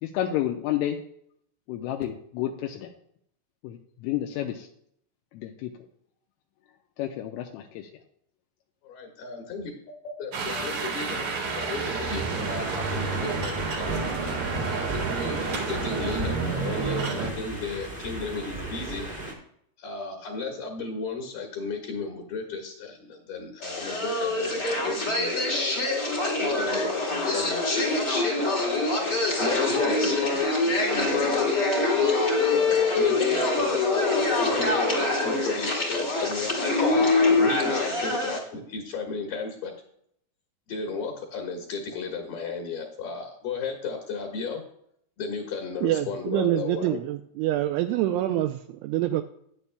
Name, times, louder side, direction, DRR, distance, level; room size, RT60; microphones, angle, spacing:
voice 1, 0.0-1.0 1.7-2.9 3.6-4.7 5.3-5.7 7.0-7.9, left 12 dB, 85° left, 2 dB, 3.2 m, -30 dB
voice 2, 8.9-9.7 10.0-11.2 11.6-14.0 14.7-19.0 19.8-25.7 26.2-27.7 28.4-31.6 32.5-33.8 34.1-39.7 40.7-44.6 45.2-47.0, left 4 dB, 60° left, 1 dB, 2.9 m, -34 dB
sound 1, 10.3-17.3, right 4 dB, 65° right, 1.8 m, -30 dB
sound 2, 12.0-19.3, right 1 dB, 45° right, 0.6 m, -36 dB
sound 3, 23.6-38.4, left 3 dB, 45° left, 1.4 m, -24 dB
voice 3, 45.8-49.2, right 14 dB, 85° right, 7 dB, 2.7 m, -26 dB
14.5 x 9.8 x 2.2 m, 0.68 s
omnidirectional pair, 5.8 m